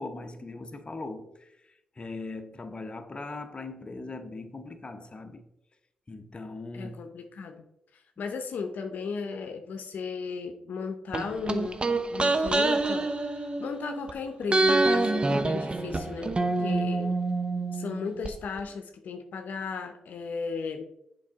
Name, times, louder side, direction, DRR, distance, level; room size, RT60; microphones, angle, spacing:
voice 1, 0.0-5.5 6.1-6.9, left 3 dB, 35° left, 0.8 m, -40 dB
voice 2, 6.7-7.6 7.9-11.8 12.1-17.1 17.7-20.9, left 5 dB, 70° left, 0.7 m, -35 dB
sound 1, 11.1-14.1 14.5-18.3 18.6-18.7, right 2 dB, 35° right, 0.7 m, -26 dB
7.3 x 4.7 x 3.6 m
supercardioid pair, 50°, 3 cm